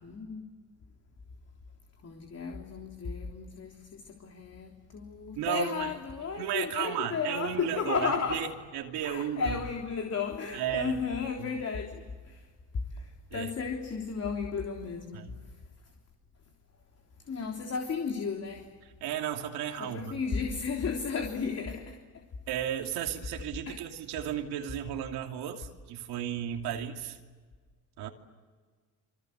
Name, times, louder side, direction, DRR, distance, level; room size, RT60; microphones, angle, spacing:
voice 1, 0.0-0.4 2.0-8.5 9.0-12.5 12.9-15.2 17.2-18.7 19.8-22.0 23.7-23.8, left 5 dB, 40° left, 2 dB, 3.4 m, -34 dB
voice 2, 5.4-5.9 6.4-9.6 10.5-11.0 11.4-11.5 13.3-13.5 15.1-15.4 19.0-20.2 22.5-27.2 28.0-28.1, right 10 dB, 85° right, 3 dB, 2.9 m, -34 dB
27.5 x 26.0 x 8.1 m, 1.5 s
cardioid pair, 120°, 38 cm